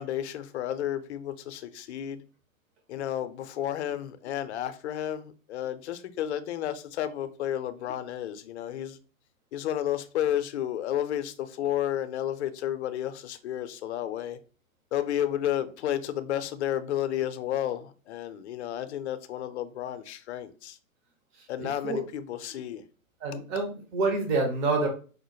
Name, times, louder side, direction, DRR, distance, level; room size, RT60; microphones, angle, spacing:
voice 1, 0.0-2.2 2.9-9.0 9.5-14.4 14.9-20.8 21.5-22.8, left 11 dB, 50° left, 0.5 m, -32 dB
voice 2, 21.6-22.0 23.2-24.9, right 3 dB, 35° right, 1.1 m, -27 dB
4.9 x 2.1 x 3.1 m
hypercardioid pair, 120°, 42 cm